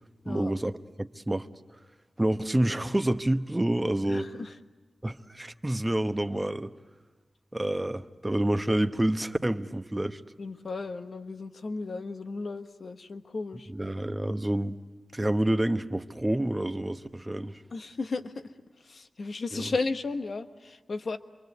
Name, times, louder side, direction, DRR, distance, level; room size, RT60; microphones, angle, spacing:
voice 1, 0.3-0.7 1.0-1.5 2.2-4.3 5.0-6.7 7.5-10.2 13.7-14.8 15.1-17.6 19.5-19.6, right 1 dB, 20° right, 1.0 m, -28 dB
voice 2, 4.1-4.6 10.4-13.7 17.7-21.2, left 3 dB, 70° left, 1.2 m, -35 dB
26.5 x 23.5 x 8.2 m
cardioid pair, 60°, 0 cm